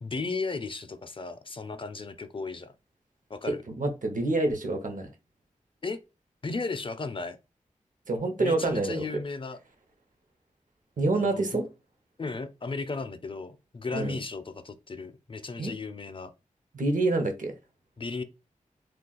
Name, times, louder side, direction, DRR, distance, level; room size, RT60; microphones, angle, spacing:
voice 1, 0.0-2.7 3.3-3.6 5.8-6.0 6.4-7.4 8.4-9.6 11.1-11.6 12.2-16.3 18.0-18.2, left 3 dB, 40° left, 0.4 m, -35 dB
voice 2, 3.8-5.1 8.1-9.1 11.0-11.6 13.9-14.1 15.6-15.7 16.7-17.5, right 2 dB, 70° right, 0.8 m, -27 dB
2.4 x 2.3 x 3.8 m
cardioid pair, 50°, 14 cm